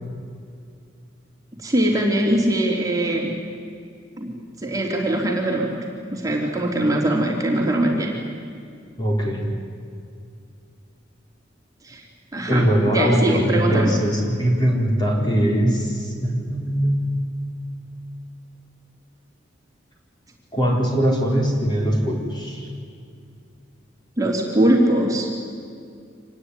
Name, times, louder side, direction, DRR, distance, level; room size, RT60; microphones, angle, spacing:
voice 1, 1.6-3.3 4.2-5.8 6.1-8.2 11.8-12.0 12.3-13.9 24.2-25.3, right 1 dB, 20° right, -1 dB, 3.2 m, -21 dB
voice 2, 9.0-9.5 12.5-17.3 20.5-22.7, equal, 25° left, -1 dB, 4.2 m, -21 dB
26.0 x 19.5 x 9.8 m, 2.4 s
head